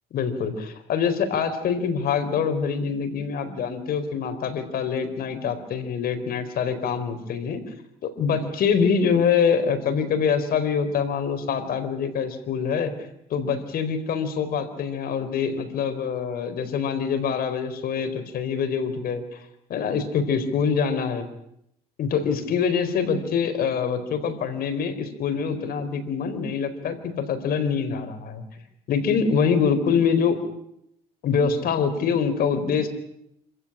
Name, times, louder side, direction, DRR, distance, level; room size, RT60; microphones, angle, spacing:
voice 1, 0.1-7.6 8.0-12.9 13.3-19.4 19.7-21.3 22.0-28.5 28.9-30.4 31.2-32.9, left 6 dB, 60° left, 9 dB, 4.2 m, -25 dB
26.5 x 15.5 x 10.0 m, 0.77 s
cardioid pair, 110°, 17 cm